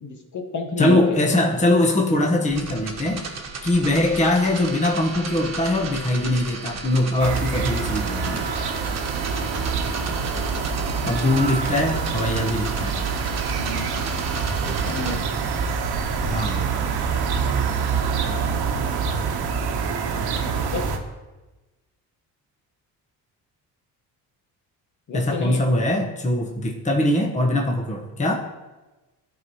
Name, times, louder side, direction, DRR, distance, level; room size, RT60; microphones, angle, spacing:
voice 1, 0.0-1.0 13.6-13.9 14.6-15.2 20.6-20.8 25.1-25.6, left 3 dB, 45° left, 3 dB, 1.3 m, -29 dB
voice 2, 0.8-3.3 3.6-8.5 11.1-13.1 16.3-16.7 25.1-28.3, left 1 dB, 20° left, 0 dB, 1.0 m, -22 dB
sound 1, 2.5-15.2, right 3 dB, 40° right, 1.2 m, -34 dB
sound 2, 7.2-21.0, right 5 dB, 70° right, 1.1 m, -26 dB
12.0 x 4.8 x 2.9 m, 1.1 s
cardioid pair, 80°, 40 cm